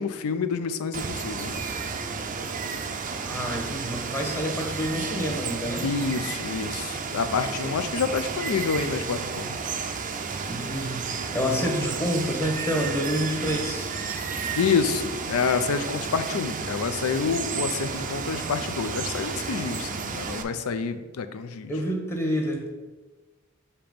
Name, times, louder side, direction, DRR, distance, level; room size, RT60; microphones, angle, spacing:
voice 1, 0.0-1.6 5.8-9.6 14.5-21.7, left 5 dB, 80° left, 10 dB, 0.5 m, -28 dB
Water, 0.9-20.4, right 5 dB, 40° right, 0.5 m, -32 dB
voice 2, 3.2-5.9 10.5-13.9 21.7-22.8, equal, 10° left, 0 dB, 1.0 m, -28 dB
6.8 x 2.9 x 5.1 m, 1.2 s
head